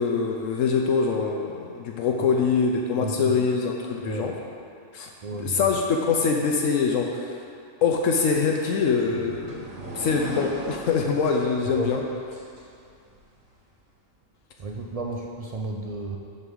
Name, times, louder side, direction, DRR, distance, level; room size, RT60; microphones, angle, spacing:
voice 1, 0.0-4.4 4.9-7.4 7.8-12.0, left 5 dB, 80° left, 1 dB, 1.0 m, -24 dB
voice 2, 3.0-3.4 4.0-4.4 5.2-5.7 11.6-12.1 14.6-16.2, right 2 dB, 60° right, 0 dB, 0.3 m, -33 dB
sound 1, 8.5-13.2, right 1 dB, 80° right, 1.6 m, -38 dB
6.7 x 5.3 x 6.2 m, 2.4 s
omnidirectional pair, 1.4 m